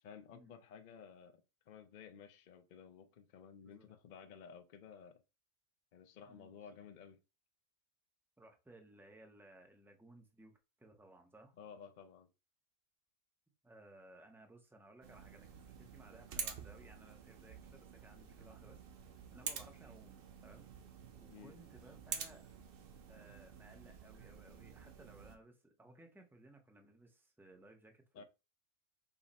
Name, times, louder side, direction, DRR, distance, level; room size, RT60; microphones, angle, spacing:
voice 1, 0.0-5.2 5.9-7.2 11.6-12.3 21.3-21.5 28.1-28.2, left 7 dB, 55° left, 0.5 m, -55 dB
voice 2, 3.6-4.0 6.3-6.6 8.4-10.5 10.8-11.6 13.6-18.9 19.3-20.7 21.2-22.5 23.1-28.2, right 2 dB, 5° right, 0.4 m, -60 dB
sound 1, 15.0-25.4, right 6 dB, 55° right, 0.8 m, -49 dB
5.5 x 2.0 x 4.1 m
omnidirectional pair, 1.4 m